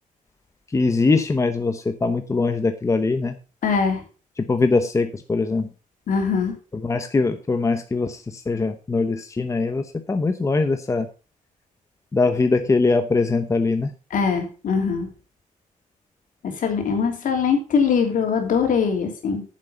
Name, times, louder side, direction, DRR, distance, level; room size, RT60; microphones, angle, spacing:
voice 1, 0.7-3.3 4.4-5.7 6.8-11.1 12.1-13.9, left 3 dB, 20° left, 7 dB, 0.9 m, -22 dB
voice 2, 3.6-4.0 6.1-6.5 14.1-15.1 16.4-19.4, left 6 dB, 70° left, 4 dB, 3.2 m, -22 dB
9.2 x 7.5 x 5.6 m, 0.34 s
cardioid pair, 125°, 14 cm